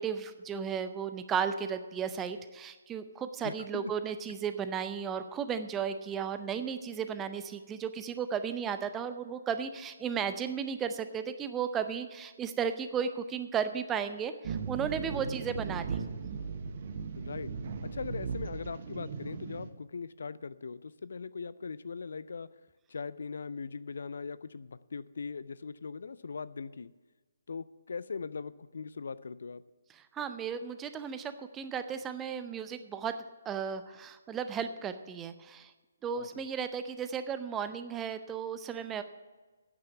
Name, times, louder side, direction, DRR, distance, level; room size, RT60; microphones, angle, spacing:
voice 1, 0.0-16.0 16.3-16.4 29.9-33.1 33.4-35.7 36.0-39.0, right 7 dB, 10° right, 10 dB, 0.6 m, -35 dB
voice 2, 3.4-3.9 17.1-17.5 17.9-22.5 22.9-26.9 27.5-29.6 36.2-36.4, left 5 dB, 55° left, 16 dB, 0.4 m, -40 dB
sound 1, 14.4-19.7, right 5 dB, 40° right, 1.1 m, -37 dB
9.7 x 9.2 x 6.9 m, 1.3 s
figure-of-eight pair, 140°, 0 cm